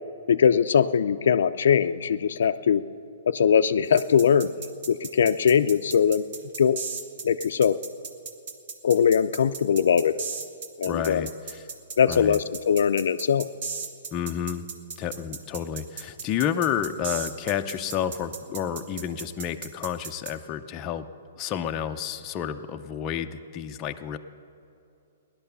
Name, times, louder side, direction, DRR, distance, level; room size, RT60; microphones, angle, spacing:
voice 1, 0.3-2.8 3.3-4.5 4.9-6.3 6.6-6.8 7.2-7.8 8.8-10.1 10.8-11.2 12.0-13.5, left 7 dB, 70° left, 11 dB, 0.5 m, -21 dB
sound 1, 4.0-20.3, right 5 dB, 50° right, 1.3 m, -36 dB
voice 2, 10.8-11.7 12.1-12.4 14.1-14.7 15.0-21.0 21.4-24.2, left 9 dB, 20° left, 5 dB, 0.6 m, -30 dB
16.5 x 11.5 x 6.8 m, 2.7 s
hypercardioid pair, 160°, 0 cm